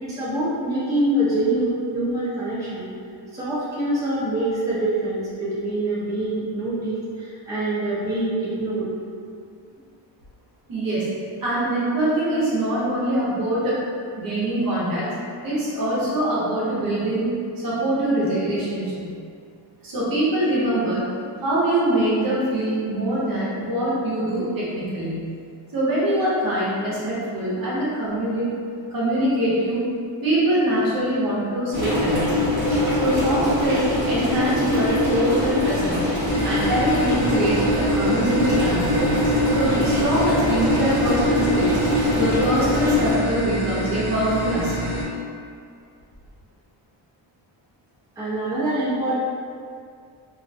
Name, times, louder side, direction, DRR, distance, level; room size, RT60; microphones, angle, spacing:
voice 1, 0.0-2.9 3.3-8.9 48.2-49.1, right 1 dB, 10° right, -12 dB, 0.6 m, -25 dB
voice 2, 10.7-11.1 11.4-13.8 14.1-15.1 15.4-19.1 19.8-21.1 21.4-25.3 25.7-28.5 28.9-29.8 30.2-32.6 32.9-36.1 36.4-39.3 39.5-41.8 42.1-45.0, right 1 dB, 45° right, -8 dB, 0.8 m, -23 dB
sound 1, 31.7-43.1, left 1 dB, 25° right, 1.0 m, -22 dB
sound 2, 36.3-45.0, right 1 dB, 35° left, 0.6 m, -28 dB
2.5 x 2.1 x 2.6 m, 2.3 s
wide cardioid pair, 135°, 47 cm